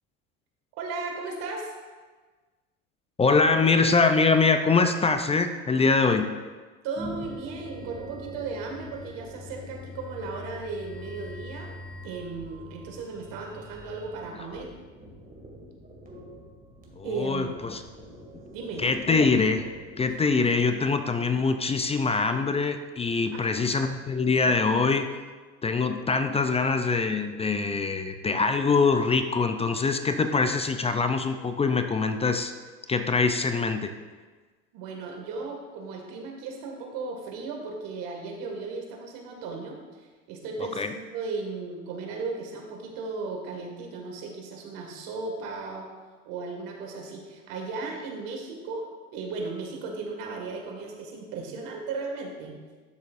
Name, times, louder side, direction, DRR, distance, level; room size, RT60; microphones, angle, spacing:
voice 1, 0.8-1.7 6.8-11.8 12.0-14.7 17.0-17.5 18.5-18.8 20.1-20.2 23.3-23.4 34.7-45.9 46.3-48.9 49.1-52.6, right 4 dB, 65° right, 1 dB, 2.0 m, -36 dB
voice 2, 3.2-6.3 17.0-17.8 18.8-19.7 20.0-25.1 25.6-32.5 32.9-33.9 40.8-40.9, left 4 dB, 15° left, 8 dB, 0.5 m, -24 dB
sound 1, 6.9-20.1, equal, 25° right, 2.2 m, -43 dB
12.0 x 6.5 x 2.6 m, 1.4 s
hypercardioid pair, 90°, 37 cm